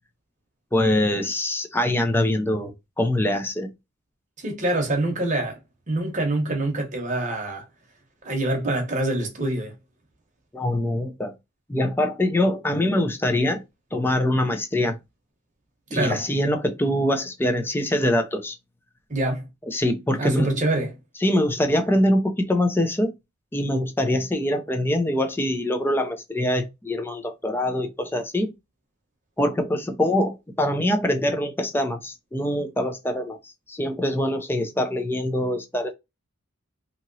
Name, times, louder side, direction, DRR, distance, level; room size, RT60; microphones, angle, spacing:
voice 1, 0.7-3.7 10.5-11.3 11.7-13.6 13.9-15.0 15.9-18.6 19.7-20.5 21.2-23.1 23.5-28.5 29.4-35.9, left 1 dB, 10° left, 0.3 m, -24 dB
voice 2, 4.4-5.6 5.9-7.6 8.2-9.7 15.9-16.2 19.1-19.5 20.2-20.9, right 2 dB, 35° right, 0.8 m, -25 dB
2.8 x 2.8 x 2.6 m
head